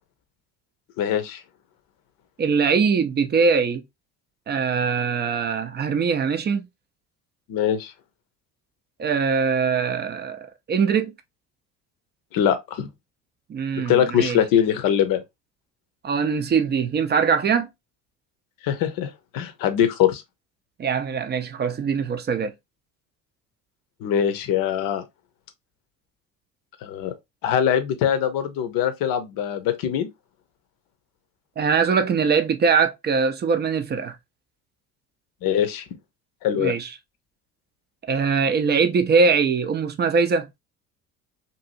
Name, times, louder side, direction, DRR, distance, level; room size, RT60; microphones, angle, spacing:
voice 1, 1.0-1.4 7.5-7.9 12.3-12.9 13.9-15.2 18.6-20.2 24.0-25.0 26.8-27.1 27.4-30.1 35.4-35.8 36.4-36.7, left 9 dB, 55° left, 0.7 m, -22 dB
voice 2, 2.4-3.8 4.5-6.6 9.0-11.1 13.5-14.4 16.0-17.7 20.8-22.5 31.6-34.2 36.5-36.9 38.1-40.5, right 5 dB, 25° right, 0.5 m, -22 dB
2.7 x 2.6 x 2.5 m
hypercardioid pair, 60°, 41 cm